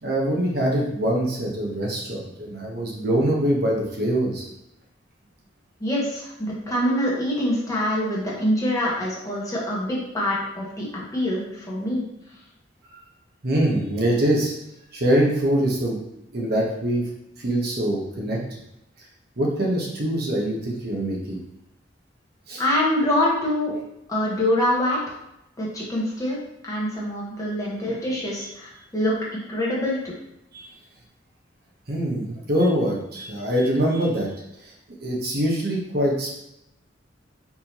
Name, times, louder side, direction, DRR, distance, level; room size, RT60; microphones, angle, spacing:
voice 1, 0.0-4.5 12.9-13.0 13.4-14.5 14.9-16.0 16.3-17.0 17.4-18.4 19.4-21.4 22.5-22.6 30.5-30.7 31.9-34.3 34.6-34.7 35.0-36.4, right 1 dB, 55° right, -2 dB, 1.0 m, -24 dB
voice 2, 5.8-12.0 22.6-23.7 24.1-25.2 25.6-26.4 26.6-30.0, left 1 dB, 20° left, -5 dB, 1.2 m, -25 dB
4.6 x 3.5 x 2.9 m, 0.83 s
head